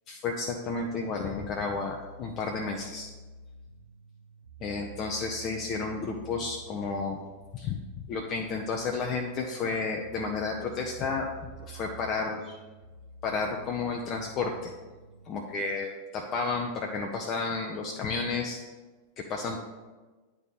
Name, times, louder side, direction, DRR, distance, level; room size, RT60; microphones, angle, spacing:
voice 1, 0.1-3.1 4.6-7.2 7.5-12.6 13.2-14.7 15.3-18.6 19.2-19.6, left 4 dB, 35° left, 1 dB, 0.6 m, -32 dB
sound 1, 1.7-15.6, right 4 dB, 75° right, 0.7 m, -49 dB
9.3 x 3.6 x 4.0 m, 1.3 s
figure-of-eight pair, 90°, 0 cm